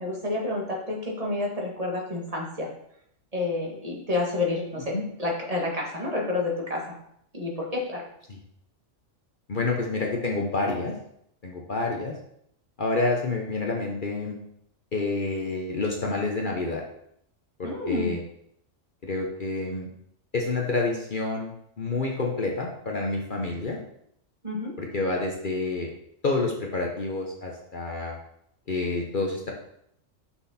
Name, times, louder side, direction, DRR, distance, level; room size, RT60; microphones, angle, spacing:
voice 1, 0.0-2.7 3.3-6.8 7.3-8.0 17.6-18.2 24.4-24.7, left 2 dB, 30° right, -1 dB, 1.6 m, -29 dB
voice 2, 9.5-10.9 11.4-12.1 12.8-14.4 14.9-16.8 17.6-18.2 19.0-19.9 20.3-23.8 24.8-25.9 26.2-28.2 28.7-29.5, left 3 dB, 45° left, 0 dB, 1.0 m, -28 dB
6.1 x 6.1 x 4.2 m, 0.73 s
omnidirectional pair, 1.4 m